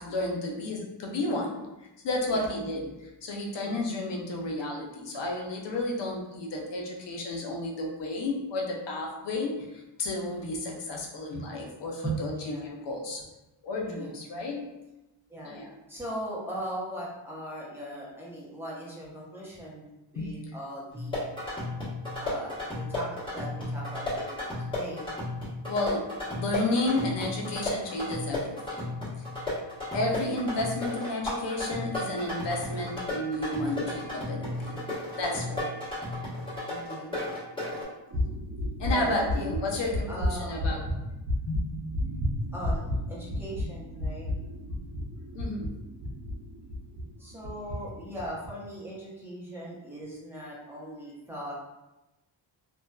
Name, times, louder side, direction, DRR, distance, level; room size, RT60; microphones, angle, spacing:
voice 1, 0.0-1.6 2.0-2.9 3.2-13.2 13.6-14.7 15.4-15.7 20.2-20.3 25.7-28.9 29.9-34.8 35.2-35.8 38.8-40.9 41.5-41.8 42.1-42.2 43.6-43.7 45.3-45.7, left 2 dB, 65° left, -1 dB, 0.6 m, -32 dB
voice 2, 12.0-12.8 13.8-14.2 15.3-15.6 15.9-19.9 20.1-21.3 22.2-25.1 36.7-37.2 38.9-39.5 40.1-40.8 42.0-42.1 42.5-44.3 47.2-51.5, right 1 dB, 5° right, -7 dB, 0.7 m, -39 dB
sound 1, 20.9-37.8, left 2 dB, 10° left, 1.2 m, -34 dB
sound 2, 38.1-47.1 47.4-47.8 48.2-48.5, left 1 dB, 45° right, 0.6 m, -31 dB
2.5 x 2.2 x 2.2 m, 0.98 s
wide cardioid pair, 110°, 46 cm